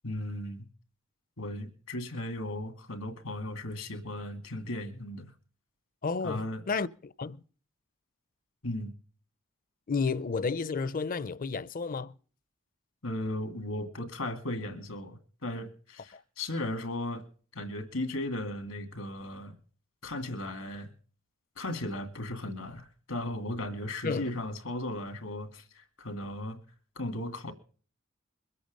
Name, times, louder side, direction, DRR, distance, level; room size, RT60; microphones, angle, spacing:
voice 1, 0.0-0.7 1.4-5.3 6.2-6.6 8.6-8.9 13.0-17.3 17.5-19.5 20.0-20.9 21.6-26.6 27.0-27.5, left 1 dB, 85° left, 2.3 m, -36 dB
voice 2, 6.0-7.4 9.9-12.2 16.1-16.2 24.0-24.3, left 4 dB, 40° left, 0.5 m, -32 dB
22.5 x 8.4 x 5.2 m
head